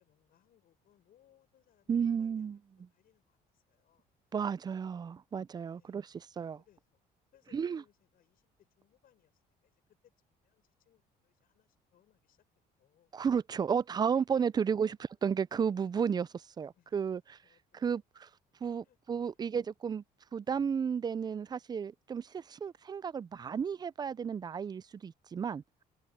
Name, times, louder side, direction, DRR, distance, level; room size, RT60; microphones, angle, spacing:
voice 1, 0.0-2.6 2.9-4.1 5.7-6.2 6.5-7.0 7.3-12.4 12.8-13.1 14.6-14.9 16.7-17.1 17.4-18.0 18.7-19.0 19.3-19.6, left 11 dB, 60° left, 6.5 m, -69 dB
voice 2, 1.9-2.6 4.3-6.6 7.5-7.8 13.1-15.0 15.2-17.4 17.7-18.0 18.6-20.0 20.3-25.6, right 7 dB, 25° right, 0.4 m, -33 dB
cardioid pair, 110°, 17 cm